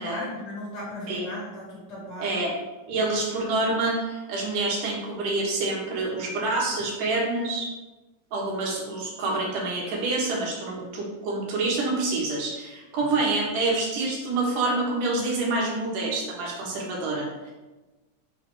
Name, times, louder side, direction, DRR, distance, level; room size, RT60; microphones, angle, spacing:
voice 1, 0.0-2.4 10.8-10.9, left 1 dB, 50° left, -5 dB, 2.0 m, -36 dB
voice 2, 2.2-2.5 2.9-7.7 8.3-17.5, right 2 dB, 85° right, -3 dB, 3.0 m, -27 dB
6.1 x 5.7 x 3.3 m, 1.2 s
omnidirectional pair, 3.7 m